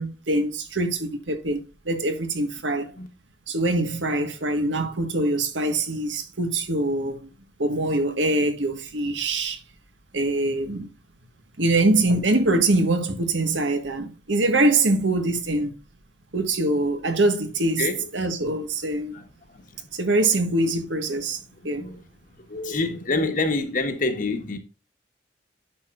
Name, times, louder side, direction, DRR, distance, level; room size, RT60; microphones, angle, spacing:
voice 1, 0.0-2.9 3.5-7.3 7.6-9.6 10.1-10.9 11.6-15.7 16.3-17.9 18.1-19.2 19.9-21.9, right 2 dB, 80° right, 1.6 m, -24 dB
voice 2, 22.5-24.6, left 3 dB, 45° left, 1.4 m, -26 dB
10.5 x 6.7 x 2.5 m
head